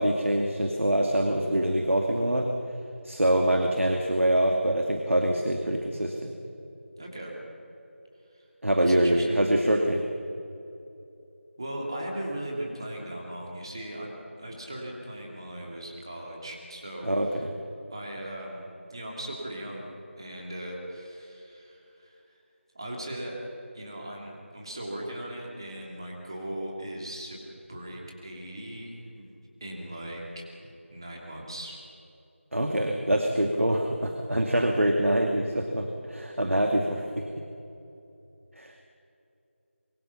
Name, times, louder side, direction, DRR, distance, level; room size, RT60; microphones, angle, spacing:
voice 1, 0.0-2.5 3.0-6.3 8.6-10.0 17.0-17.5 32.5-37.3 38.6-38.7, right 1 dB, 80° right, 3 dB, 2.4 m, -25 dB
voice 2, 7.0-7.3 8.3-8.4 8.8-9.4 11.6-17.1 17.3-17.4 17.9-19.9 20.2-22.2 22.7-23.4 23.7-27.4 27.7-29.3 29.6-31.8, right 1 dB, 20° right, -1 dB, 2.6 m, -38 dB
25.0 x 24.0 x 5.9 m, 2.9 s
figure-of-eight pair, 175°, 7 cm